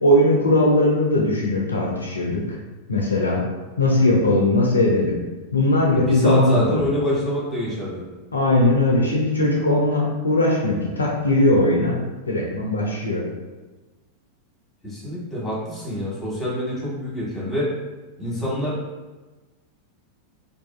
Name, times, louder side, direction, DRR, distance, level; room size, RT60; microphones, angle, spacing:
voice 1, 0.0-2.4 2.9-3.4 3.8-5.2 5.5-6.9 8.3-12.0 12.3-13.2, left 1 dB, 75° left, -2 dB, 0.4 m, -19 dB
voice 2, 6.0-8.0 14.8-17.7 18.2-18.8, equal, 10° left, -7 dB, 1.1 m, -26 dB
2.5 x 2.3 x 2.3 m, 1.2 s
figure-of-eight pair, 90°, 0 cm